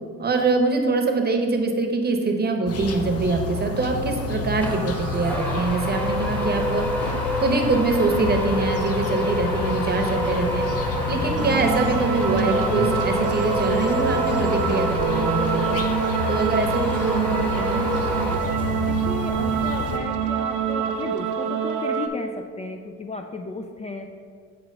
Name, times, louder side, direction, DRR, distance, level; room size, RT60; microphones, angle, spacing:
voice 1, 0.2-6.8 7.4-10.7 11.1-15.8 16.3-17.8, right 3 dB, 35° right, 3 dB, 0.9 m, -24 dB
sound 1, 2.7-20.0, left 3 dB, 55° left, 0.7 m, -29 dB
sound 2, 4.6-18.9, equal, 5° left, 1.1 m, -28 dB
sound 3, 11.4-22.1, right 8 dB, 85° right, 0.6 m, -26 dB
voice 2, 17.9-24.2, left 3 dB, 20° left, 4 dB, 0.3 m, -35 dB
7.7 x 2.9 x 5.3 m, 2.1 s
cardioid pair, 90°, 30 cm